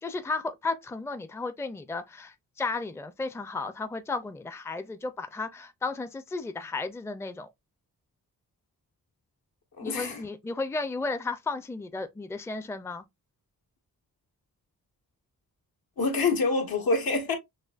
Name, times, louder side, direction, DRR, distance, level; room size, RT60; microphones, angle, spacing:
voice 1, 0.0-7.5 9.8-13.0, left 3 dB, 10° left, 0.4 m, -34 dB
voice 2, 9.8-10.2 16.0-17.3, left 3 dB, 80° left, 1.5 m, -26 dB
6.3 x 2.1 x 2.4 m
wide cardioid pair, 90°, 35 cm